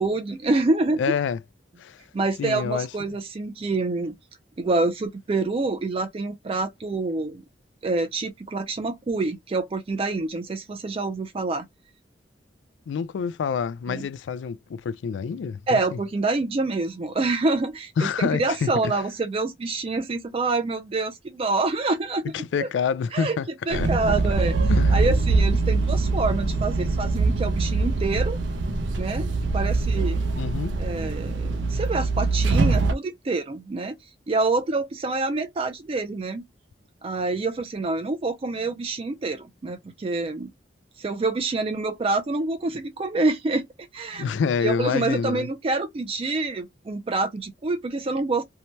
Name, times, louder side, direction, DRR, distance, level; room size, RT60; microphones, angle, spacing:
voice 1, 0.0-1.0 2.1-4.1 4.6-7.4 7.8-11.7 13.9-14.1 15.7-22.3 22.6-22.7 23.1-23.4 23.7-24.5 24.9-28.4 29.0-30.2 30.8-34.0 34.3-36.4 37.0-40.5 41.0-43.6 43.9-44.3 44.6-48.4, right 3 dB, 30° right, 0.4 m, -26 dB
voice 2, 1.0-1.4 1.8-2.0 2.4-2.9 12.9-16.0 18.0-18.9 22.3-24.2 24.7-25.0 30.4-30.8 44.1-45.5, left 6 dB, 90° left, 0.3 m, -27 dB
sound 1, 23.7-32.9, right 3 dB, 85° right, 0.6 m, -23 dB
2.7 x 2.1 x 3.0 m
head